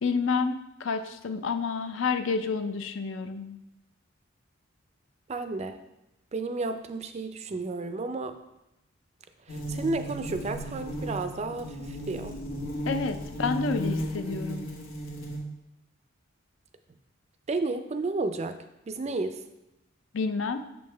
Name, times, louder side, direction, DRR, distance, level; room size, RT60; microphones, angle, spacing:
voice 1, 0.0-3.6 12.9-14.7 20.1-20.6, left 4 dB, 65° left, 9 dB, 0.5 m, -29 dB
voice 2, 5.3-5.8 6.3-8.3 9.5-12.4 17.5-18.6 18.9-19.4, right 3 dB, 30° right, 9 dB, 0.4 m, -32 dB
sound 1, 9.5-15.4, right 1 dB, 85° left, 1.4 m, -35 dB
7.0 x 5.4 x 3.3 m, 0.90 s
head